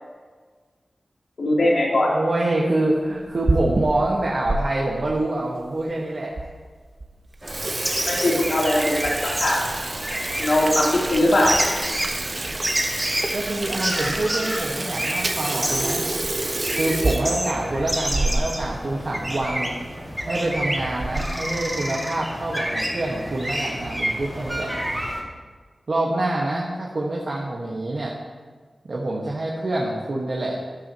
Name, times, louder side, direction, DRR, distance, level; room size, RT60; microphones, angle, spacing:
voice 1, 1.4-2.1 8.0-9.6 10.4-11.6, left 1 dB, 85° left, -5 dB, 3.1 m, -20 dB
voice 2, 2.1-6.5 13.3-16.1 16.7-19.8 20.3-24.7 25.9-28.1 28.9-30.6, right 2 dB, 60° right, -3 dB, 1.5 m, -26 dB
Water tap faucet / Sink (filling or washing), 3.2-4.6 5.1-5.2 5.9-6.0 6.4-6.5 6.8-7.0 7.3-18.7 19.0-19.1 19.4-19.5 20.3-20.6 21.0-21.4, right 2 dB, 40° right, 0.8 m, -28 dB
sound 1, 7.4-25.2, right 1 dB, 15° right, 2.1 m, -29 dB
13.0 x 12.0 x 3.0 m, 1.5 s
wide cardioid pair, 95°, 0 cm